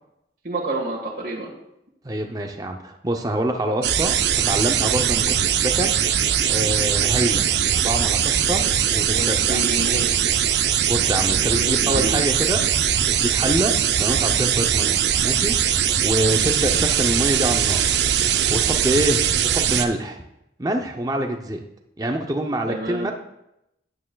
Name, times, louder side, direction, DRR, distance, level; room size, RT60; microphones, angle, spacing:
voice 1, 0.4-1.5 8.5-8.7 9.1-10.1 11.3-12.1 22.7-23.1, right 1 dB, 55° right, -4 dB, 1.6 m, -29 dB
voice 2, 2.0-4.2 4.5-7.5 7.7-9.7 10.9-12.6 13.0-17.8 18.5-20.2 20.6-21.6 22.0-23.1, right 1 dB, 20° right, 4 dB, 0.5 m, -26 dB
sound 1, 3.8-19.9, right 9 dB, 70° right, 0.5 m, -21 dB
9.5 x 8.5 x 2.3 m, 0.84 s
head